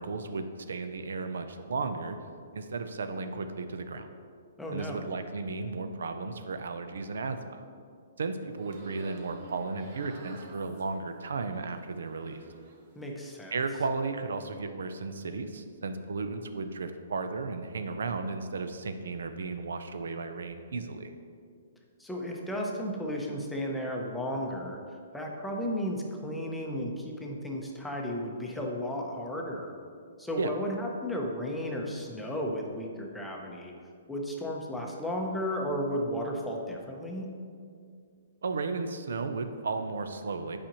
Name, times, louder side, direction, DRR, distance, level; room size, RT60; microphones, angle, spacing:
voice 1, 0.0-2.2 2.5-4.1 4.7-7.6 8.2-12.4 13.5-21.1 30.4-30.5 38.4-40.6, right 4 dB, 85° right, 8 dB, 0.5 m, -34 dB
voice 2, 4.6-5.1 13.0-13.6 22.0-29.7 30.2-33.7 34.1-37.3, equal, 5° left, -1 dB, 0.6 m, -34 dB
sound 1, 8.5-12.9 13.3-14.0, right 2 dB, 45° right, 0.8 m, -51 dB
8.6 x 4.9 x 2.9 m, 2.3 s
hypercardioid pair, 160°, 0 cm